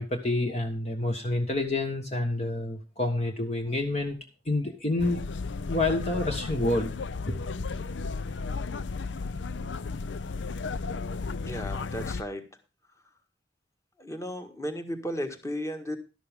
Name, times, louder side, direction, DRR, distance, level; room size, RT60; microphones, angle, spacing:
voice 1, 0.0-4.2 4.4-5.2 5.7-6.9 7.6-7.7, left 2 dB, 35° left, 1.4 m, -28 dB
sound 1, 5.0-12.2, left 4 dB, 75° left, 0.6 m, -34 dB
voice 2, 11.5-12.4 14.0-16.0, equal, 15° left, 1.8 m, -34 dB
12.5 x 12.0 x 3.6 m
head